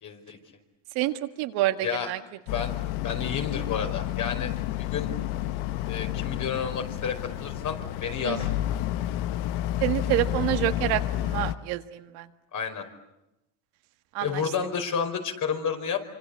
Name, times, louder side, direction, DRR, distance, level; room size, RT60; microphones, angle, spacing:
voice 1, 0.0-0.4 1.8-2.1 2.5-2.7 3.0-4.5 4.8-5.1 5.8-8.5 12.5-12.8 14.2-16.0, left 7 dB, 50° left, 5 dB, 5.1 m, -30 dB
voice 2, 1.0-2.2 8.2-8.5 9.8-12.3 14.1-14.3, right 15 dB, 75° right, 7 dB, 1.9 m, -27 dB
Boat Water vehicle, 2.5-11.5, left 13 dB, 80° left, 1.2 m, -30 dB
26.0 x 25.5 x 8.4 m, 0.90 s
supercardioid pair, 95°, 39 cm